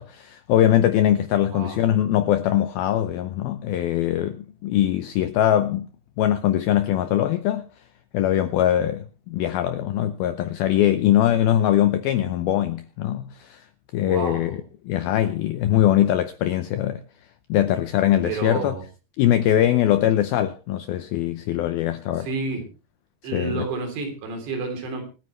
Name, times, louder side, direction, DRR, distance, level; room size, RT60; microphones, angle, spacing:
voice 1, 0.0-5.9 6.2-7.7 8.1-13.6 13.9-17.0 17.5-18.8 19.2-22.3 23.3-23.7, left 12 dB, 80° left, 2.2 m, -22 dB
voice 2, 1.5-1.8 14.0-14.6 18.2-18.8 22.2-22.6 23.2-25.0, right 3 dB, 75° right, 5.7 m, -30 dB
26.0 x 9.4 x 3.2 m
omnidirectional pair, 5.2 m